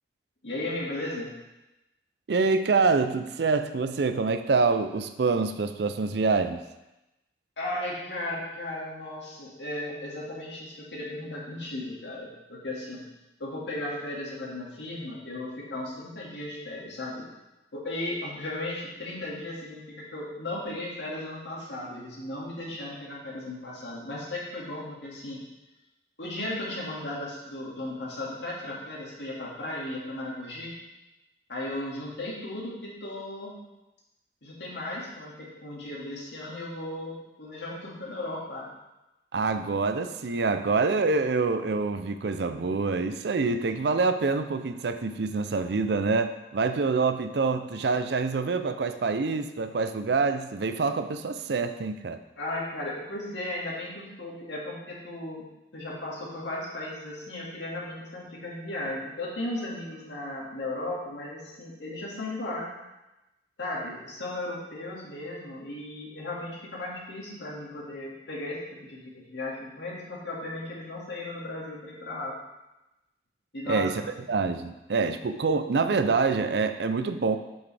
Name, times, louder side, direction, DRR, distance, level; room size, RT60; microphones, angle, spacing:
voice 1, 0.4-1.3 7.6-13.0 13.4-17.3 17.7-25.4 26.2-30.7 31.5-33.6 34.4-38.7 52.4-55.4 55.7-62.7 63.6-72.4 73.5-73.9, left 1 dB, 90° left, -4 dB, 2.1 m, -36 dB
voice 2, 2.3-6.6 39.3-52.2 73.7-74.0 74.3-77.4, right 4 dB, 70° right, 10 dB, 0.5 m, -26 dB
7.7 x 6.1 x 3.4 m, 0.99 s
head